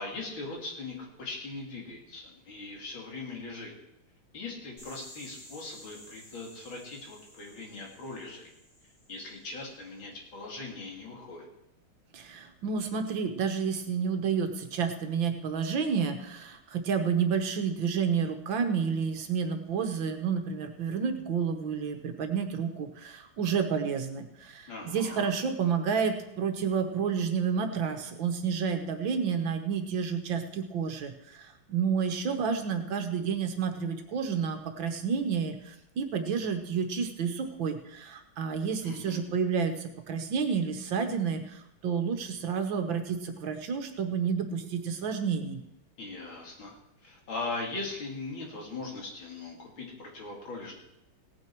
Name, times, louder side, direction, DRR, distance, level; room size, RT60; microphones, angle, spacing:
voice 1, 0.0-3.7 4.3-8.5 9.1-11.5 24.7-25.3 38.8-39.2 46.0-46.7 47.0-50.7, left 3 dB, 70° left, 0 dB, 3.4 m, -40 dB
sound 1, 4.8-9.5, left 1 dB, 50° left, 7.5 m, -53 dB
voice 2, 12.1-45.6, right 6 dB, 70° right, 6 dB, 1.8 m, -30 dB
17.0 x 9.1 x 4.6 m, 0.83 s
omnidirectional pair, 2.3 m